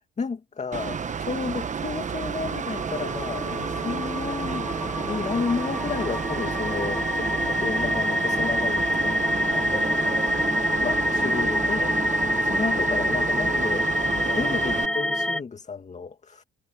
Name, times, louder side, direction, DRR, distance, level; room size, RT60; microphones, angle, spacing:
voice 1, 0.2-13.9 14.1-16.4, left 5 dB, 35° left, 2.4 m, -32 dB
Mechanical fan, 0.7-14.9, right 6 dB, 40° right, 1.1 m, -31 dB
sound 1, 2.2-15.4, left 1 dB, 5° left, 1.2 m, -26 dB
cardioid pair, 90°, 20 cm